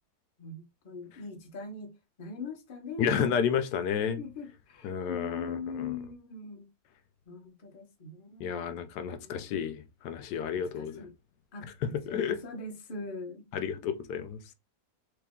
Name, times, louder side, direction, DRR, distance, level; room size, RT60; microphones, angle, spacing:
voice 1, 0.4-1.9 2.2-3.2 4.2-6.7 7.3-8.5 9.2-9.5 10.5-11.1 11.5-11.7 12.0-13.4, left 4 dB, 40° left, 0.9 m, -41 dB
voice 2, 3.0-4.2 4.8-6.0 8.4-11.1 12.1-12.4 13.5-14.4, left 7 dB, 90° left, 1.2 m, -31 dB
3.2 x 2.9 x 3.5 m
omnidirectional pair, 1.7 m